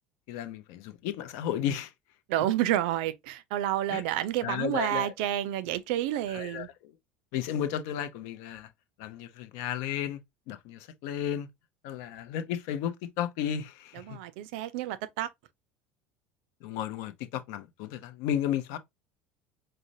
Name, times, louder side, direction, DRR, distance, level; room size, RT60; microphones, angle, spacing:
voice 1, 0.3-1.9 3.9-4.0 4.4-5.1 6.3-6.7 7.3-8.7 9.0-10.2 10.5-11.5 11.8-14.2 16.6-18.8, left 10 dB, 65° left, 0.6 m, -33 dB
voice 2, 2.3-6.7 13.9-15.3, right 12 dB, 70° right, 0.4 m, -30 dB
4.9 x 2.1 x 2.6 m
hypercardioid pair, 70°, 6 cm